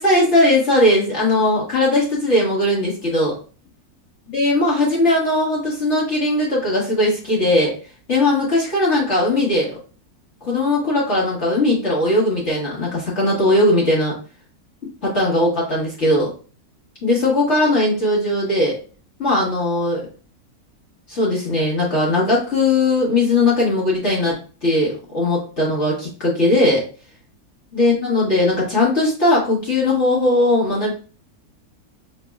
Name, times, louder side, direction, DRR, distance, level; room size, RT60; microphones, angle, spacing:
voice 1, 0.0-3.3 4.3-7.7 8.1-9.8 10.4-14.2 15.0-16.3 17.0-18.8 19.2-20.0 21.1-26.8 27.7-30.9, left 1 dB, 50° left, -6 dB, 1.6 m, -18 dB
5.7 x 3.1 x 2.3 m, 0.38 s
omnidirectional pair, 1.6 m